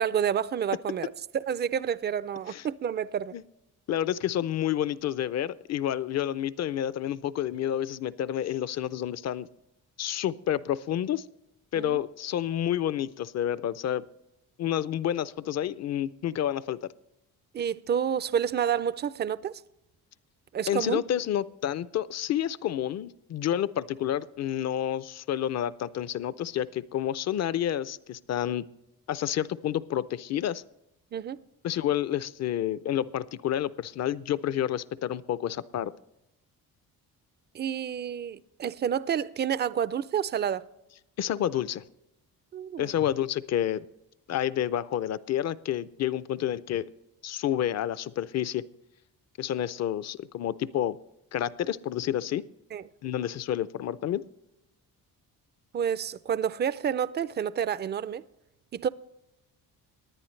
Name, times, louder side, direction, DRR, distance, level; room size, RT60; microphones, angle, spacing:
voice 1, 0.0-3.4 11.8-12.0 17.5-19.6 20.5-21.0 31.1-31.4 37.5-40.6 42.5-42.9 52.7-52.8 55.7-58.2 58.7-58.9, right 8 dB, 30° right, 0.4 m, -29 dB
voice 2, 3.9-9.5 10.0-11.2 11.7-14.0 14.6-16.9 20.7-28.7 29.1-30.6 31.6-35.9 41.2-41.8 42.8-43.8 44.3-46.9 47.2-48.6 49.4-51.0 51.3-52.4 53.0-54.2, left 11 dB, 45° left, 0.5 m, -29 dB
19.0 x 10.5 x 3.2 m
cardioid pair, 105°, 38 cm